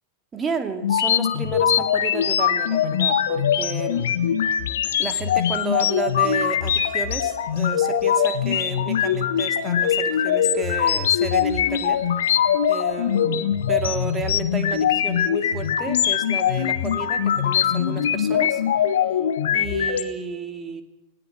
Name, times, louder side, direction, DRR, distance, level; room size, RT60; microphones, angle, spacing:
voice 1, 0.3-4.1 5.0-12.0 12.6-18.6 19.5-20.8, right 5 dB, 20° right, 7 dB, 2.6 m, -32 dB
sound 1, 0.8-20.0, left 9 dB, 60° left, 1.5 m, -22 dB
19.5 x 18.5 x 7.7 m, 0.89 s
figure-of-eight pair, 90°, 0 cm